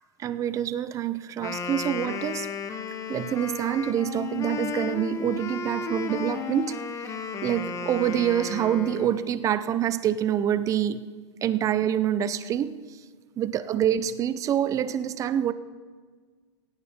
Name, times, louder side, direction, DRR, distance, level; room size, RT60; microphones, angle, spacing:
voice 1, 0.2-2.5 3.1-6.8 7.4-11.0 11.4-12.8 13.4-15.5, right 10 dB, 20° right, 15 dB, 0.6 m, -26 dB
Wind instrument woodwind instrument, 1.3-9.3, left 5 dB, 20° left, 1.1 m, -34 dB
18.0 x 14.5 x 3.6 m, 1.5 s
hypercardioid pair, 135°, 15 cm